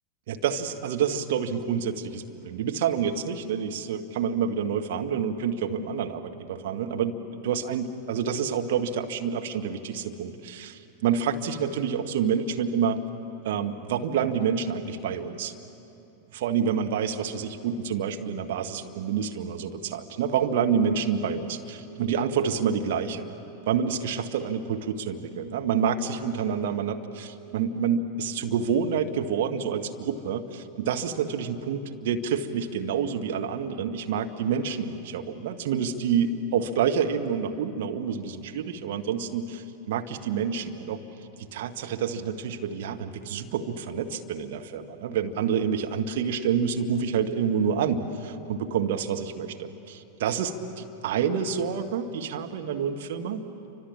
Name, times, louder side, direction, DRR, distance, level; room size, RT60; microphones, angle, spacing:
voice 1, 0.3-13.0 13.4-15.5 16.3-23.3 23.7-41.0 41.4-53.4, right 7 dB, 55° right, 4 dB, 1.5 m, -28 dB
29.5 x 25.5 x 7.4 m, 2.8 s
figure-of-eight pair, 90°, 0 cm